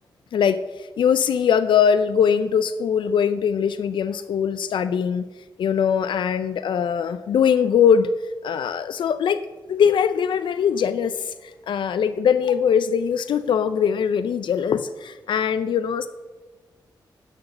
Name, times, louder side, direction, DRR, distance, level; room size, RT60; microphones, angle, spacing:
voice 1, 0.3-5.3 5.6-8.1 8.4-9.4 9.7-16.1, left 7 dB, 85° left, 11 dB, 0.4 m, -21 dB
11.0 x 4.1 x 6.6 m, 1.2 s
wide cardioid pair, 130°, 8 cm